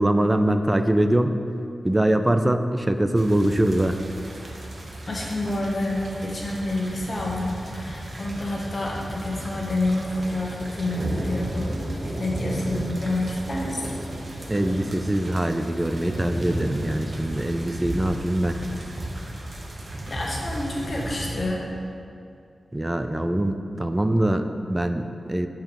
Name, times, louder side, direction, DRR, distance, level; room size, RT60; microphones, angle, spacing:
voice 1, 0.0-1.3 1.8-4.0 14.5-18.6 22.7-25.5, right 1 dB, 20° right, 8 dB, 0.4 m, -23 dB
sound 1, 3.2-21.3, right 1 dB, 55° right, 0.9 m, -34 dB
voice 2, 5.1-11.8 12.2-13.8 20.1-21.7, left 1 dB, 55° left, -3 dB, 1.4 m, -28 dB
Engine, 7.0-17.0, left 1 dB, 75° left, 1.0 m, -47 dB
5.6 x 4.7 x 5.1 m, 2.5 s
cardioid pair, 45°, 0 cm